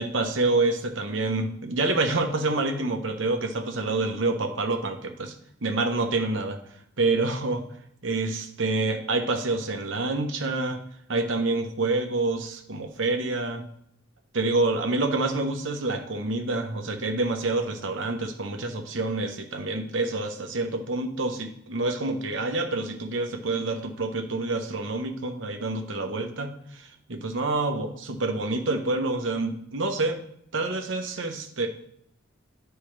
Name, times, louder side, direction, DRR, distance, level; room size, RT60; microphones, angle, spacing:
voice 1, 0.0-5.3 5.6-6.6 7.0-7.6 8.0-10.8 11.1-13.7 14.3-30.2 30.5-31.7, right 2 dB, 65° right, 4 dB, 1.0 m, -27 dB
10.5 x 4.5 x 3.3 m, 0.72 s
head